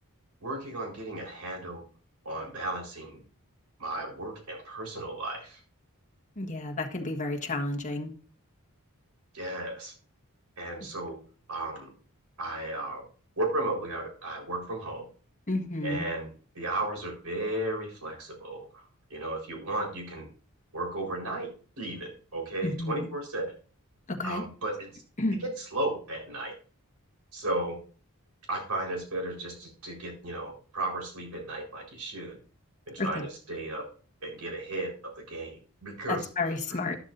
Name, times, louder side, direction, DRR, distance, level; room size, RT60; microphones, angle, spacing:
voice 1, 0.4-1.8 2.2-3.2 3.8-5.6 9.3-9.9 10.6-11.2 11.5-11.9 12.4-13.0 13.4-15.1 15.8-16.3 16.5-18.8 19.1-20.3 20.7-21.5 21.8-23.5 24.2-25.0 25.4-26.5 27.3-27.8 28.5-32.4 32.9-33.8 34.2-36.8, right 2 dB, 75° right, 0 dB, 4.4 m, -34 dB
voice 2, 6.4-8.1 15.5-16.0 22.6-23.1 24.1-24.4 25.2-25.4 33.0-33.2 36.1-37.0, left 2 dB, 35° left, 3 dB, 1.5 m, -31 dB
12.0 x 12.0 x 2.6 m, 0.40 s
head